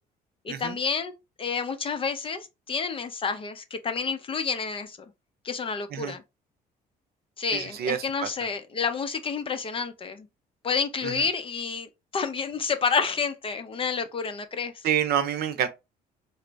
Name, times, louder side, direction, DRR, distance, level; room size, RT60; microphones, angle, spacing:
voice 1, 0.4-1.1 1.4-5.0 5.4-6.2 7.4-10.3 10.6-14.7, left 5 dB, 30° left, 0.5 m, -29 dB
voice 2, 7.5-8.3 11.0-11.3 14.8-15.7, right 9 dB, 65° right, 0.7 m, -28 dB
3.9 x 2.0 x 3.3 m
cardioid pair, 110°, 17 cm